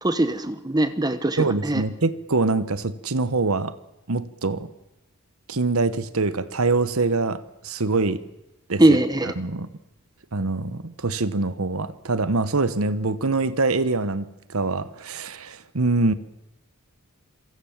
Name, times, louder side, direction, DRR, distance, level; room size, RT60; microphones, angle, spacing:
voice 1, 0.0-1.8 8.8-9.3, right 1 dB, 20° right, 1.2 m, -21 dB
voice 2, 1.4-3.7 4.1-4.7 5.5-8.2 8.7-9.0 9.2-9.7 10.3-16.1, right 3 dB, 70° right, 1.2 m, -24 dB
27.0 x 24.0 x 7.4 m
head